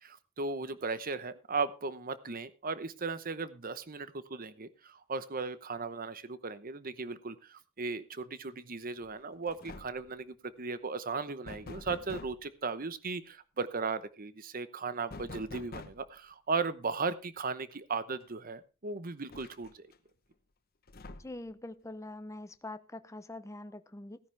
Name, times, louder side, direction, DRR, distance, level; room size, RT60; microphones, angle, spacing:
voice 1, 0.0-19.9, right 4 dB, 45° right, 14 dB, 0.9 m, -37 dB
sound 1, 9.0-9.2 9.5-10.1 11.5-12.5 15.1-16.2 17.7-17.8 18.2-18.3 19.3-20.0 20.9-21.5, left 3 dB, 45° left, 1.0 m, -46 dB
voice 2, 21.2-24.2, left 2 dB, 15° left, 11 dB, 0.7 m, -44 dB
16.5 x 10.5 x 3.4 m, 0.31 s
head